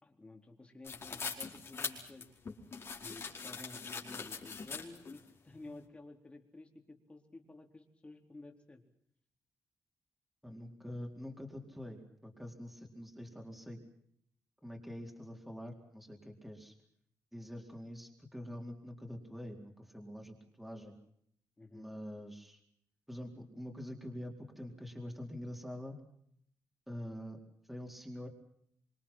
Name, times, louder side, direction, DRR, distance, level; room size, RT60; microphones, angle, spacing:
voice 1, 0.0-2.3 3.0-8.8 21.6-21.9, left 2 dB, 20° left, 3 dB, 4.3 m, -53 dB
sound 1, 0.8-5.2, left 5 dB, 40° left, 4.9 m, -42 dB
voice 2, 10.4-13.8 14.6-16.7 17.3-20.9 21.7-22.6 23.1-26.0 26.9-27.4 27.7-28.3, equal, ahead, 1 dB, 4.4 m, -45 dB
26.0 x 26.0 x 5.9 m, 0.69 s
cardioid pair, 140°, 6 cm